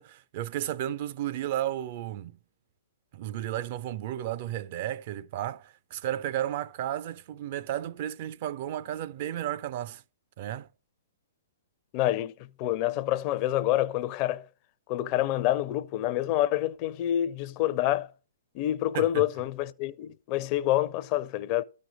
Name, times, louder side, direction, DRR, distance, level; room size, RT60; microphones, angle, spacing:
voice 1, 0.0-2.4 3.1-10.0 10.4-10.7 18.9-19.3, right 12 dB, 45° right, 0.4 m, -33 dB
voice 2, 11.9-12.3 12.6-14.4 14.9-18.1 18.5-21.6, left 13 dB, 35° left, 0.5 m, -27 dB
13.0 x 5.2 x 5.9 m
figure-of-eight pair, 115°, 0 cm